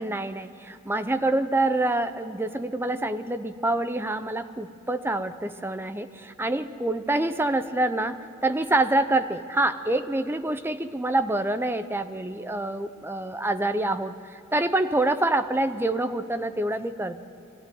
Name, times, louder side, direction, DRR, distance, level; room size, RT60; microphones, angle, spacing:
voice 1, 0.0-8.2 8.4-17.3, right 2 dB, 10° right, 9 dB, 0.7 m, -26 dB
23.0 x 15.5 x 9.4 m, 2.7 s
head